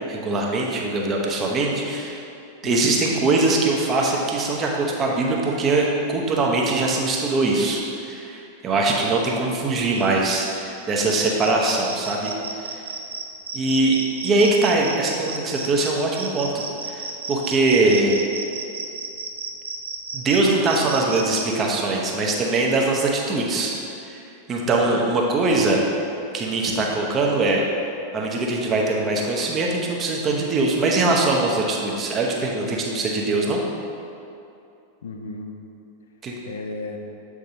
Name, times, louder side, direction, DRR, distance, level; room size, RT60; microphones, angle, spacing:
voice 1, 0.1-2.2 2.6-12.8 13.5-18.2 20.1-24.2 24.5-25.8 26.3-27.6 28.1-33.6 36.2-36.3, right 2 dB, 25° right, -1 dB, 0.8 m, -22 dB
voice 2, 2.6-3.0 24.6-25.0 35.0-35.5 36.4-37.0, left 3 dB, 65° left, 4 dB, 0.5 m, -34 dB
sound 1, 10.0-21.4, right 4 dB, 70° right, 0.5 m, -34 dB
7.6 x 4.8 x 2.8 m, 2.6 s
figure-of-eight pair, 90°, 0 cm